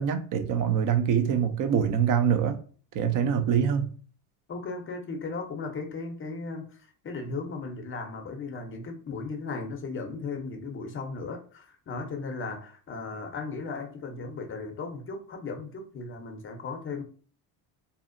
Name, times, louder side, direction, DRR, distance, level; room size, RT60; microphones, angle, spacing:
voice 1, 0.0-2.6 2.9-3.9, right 8 dB, 45° right, 0.5 m, -24 dB
voice 2, 4.5-17.0, left 4 dB, 30° left, 0.5 m, -36 dB
2.7 x 2.0 x 2.4 m
supercardioid pair, 100°, 44 cm